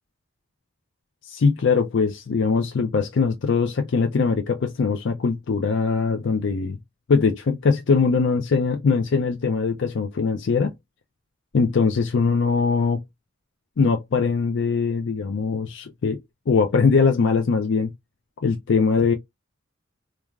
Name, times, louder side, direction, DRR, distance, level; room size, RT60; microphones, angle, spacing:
voice 1, 1.3-6.8 7.1-10.7 11.5-13.0 13.8-16.2 16.5-17.9 18.4-19.1, left 5 dB, 65° left, 0.4 m, -21 dB
3.2 x 2.3 x 2.3 m
head